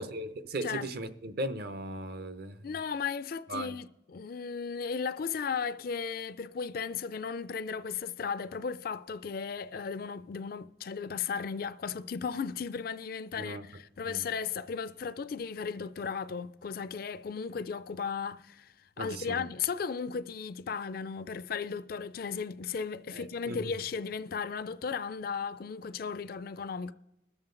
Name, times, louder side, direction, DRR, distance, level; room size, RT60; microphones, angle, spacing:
voice 1, 0.0-2.7 3.5-3.8 13.4-13.6 14.1-14.2 19.0-19.5 23.1-23.7, right 1 dB, 50° right, 0.7 m, -37 dB
voice 2, 2.6-26.9, left 6 dB, 50° left, 0.4 m, -35 dB
20.5 x 7.3 x 3.8 m
head